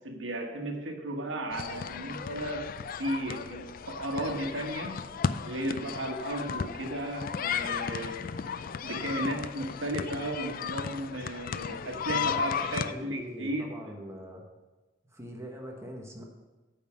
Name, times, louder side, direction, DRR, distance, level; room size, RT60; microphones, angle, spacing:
voice 1, 0.0-2.7 3.0-5.0 5.4-8.4 8.8-13.8, right 1 dB, 90° right, 2 dB, 1.3 m, -35 dB
sound 1, 1.5-12.9, left 7 dB, 50° left, 0.4 m, -35 dB
voice 2, 12.1-14.4 15.1-16.2, equal, 15° right, 0 dB, 1.2 m, -42 dB
9.0 x 5.6 x 7.3 m, 1.2 s
head